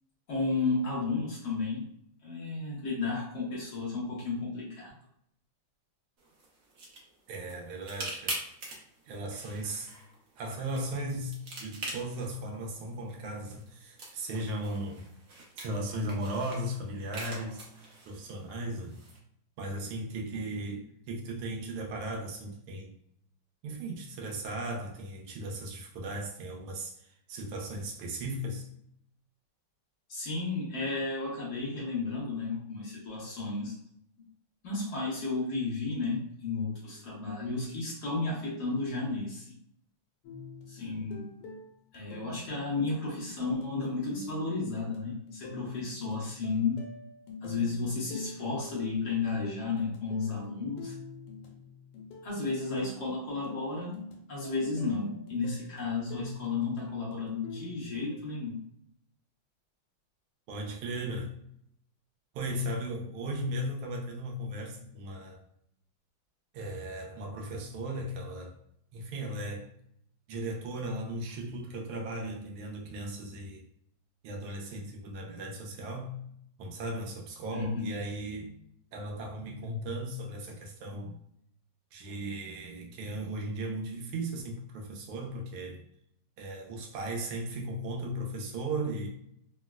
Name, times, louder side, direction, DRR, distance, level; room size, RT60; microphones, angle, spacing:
voice 1, 0.3-1.9 2.2-4.9 30.1-33.7 34.6-39.5 40.7-41.3 41.9-46.9 47.4-50.9 52.2-54.0 54.3-58.6 77.5-77.9, left 3 dB, 55° left, 1.4 m, -33 dB
sound 1, 6.2-19.2, right 2 dB, 65° right, 0.8 m, -44 dB
voice 2, 7.3-8.4 9.1-9.9 10.4-15.1 15.6-17.7 18.0-19.0 19.6-22.9 23.6-28.7 60.5-61.4 62.3-65.4 66.5-68.6 68.9-69.7 70.3-73.6 74.2-76.2 76.6-78.6 78.9-81.2 81.9-85.8 86.4-89.1, right 1 dB, 90° right, 1.5 m, -37 dB
sound 2, 40.2-58.2, left 3 dB, 90° left, 1.5 m, -46 dB
3.9 x 2.1 x 2.2 m
omnidirectional pair, 2.3 m